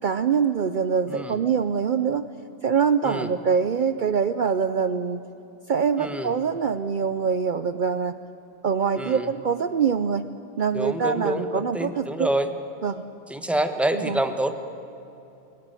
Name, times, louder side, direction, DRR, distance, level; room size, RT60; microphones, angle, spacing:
voice 1, 0.0-2.2 2.6-5.2 5.7-8.2 8.6-10.3 10.6-12.3 12.8-13.0 13.9-14.2, right 6 dB, 55° right, 12 dB, 0.7 m, -24 dB
voice 2, 6.0-6.3 9.0-9.3 10.7-12.5 13.3-14.5, right 1 dB, ahead, 8 dB, 1.0 m, -27 dB
22.0 x 18.0 x 9.1 m, 2.8 s
omnidirectional pair, 1.1 m